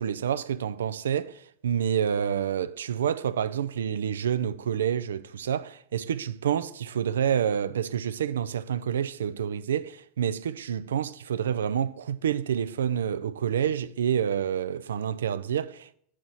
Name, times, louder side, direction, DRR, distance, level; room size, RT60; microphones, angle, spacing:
voice 1, 0.0-15.9, right 8 dB, 65° right, 0.4 m, -28 dB
8.7 x 4.9 x 5.4 m
figure-of-eight pair, 90°, 0 cm